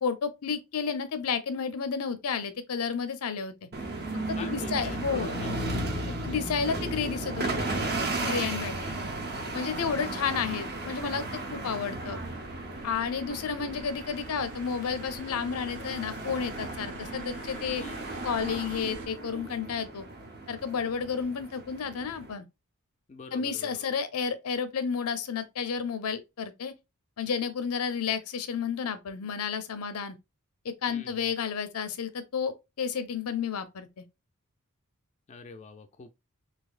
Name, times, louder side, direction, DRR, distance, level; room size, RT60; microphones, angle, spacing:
voice 1, 0.0-3.5 4.3-5.3 6.1-7.6 8.2-8.8 9.5-12.2 12.8-17.8 18.2-20.1 20.5-22.5 23.3-26.7 27.2-30.2 30.6-34.1, left 6 dB, 75° left, 0.6 m, -31 dB
sound 1, 3.7-22.3, right 2 dB, 45° right, 0.7 m, -35 dB
voice 2, 4.3-5.5 8.4-8.5 8.8-9.1 17.8-18.3 23.1-23.9 30.9-31.3 35.3-36.1, left 4 dB, 30° left, 0.3 m, -45 dB
sound 2, 8.7-19.1, right 1 dB, 80° right, 0.9 m, -46 dB
4.0 x 2.7 x 2.4 m
head